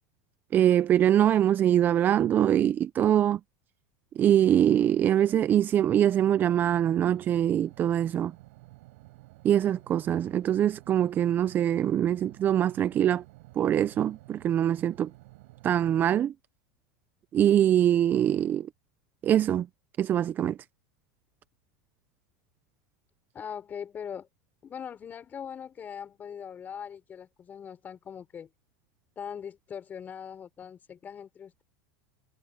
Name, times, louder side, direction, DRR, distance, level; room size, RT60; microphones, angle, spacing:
voice 1, 0.5-3.4 4.2-8.3 9.4-13.2 13.6-15.1 15.6-16.3 17.3-18.7 19.2-19.7 20.0-20.6, right 10 dB, 30° right, 0.4 m, -23 dB
sound 1, 6.2-16.2, right 21 dB, 70° right, 6.7 m, -52 dB
voice 2, 23.3-24.3 24.6-28.5 29.2-31.6, left 8 dB, 25° left, 6.0 m, -41 dB
supercardioid pair, 130°, 7 cm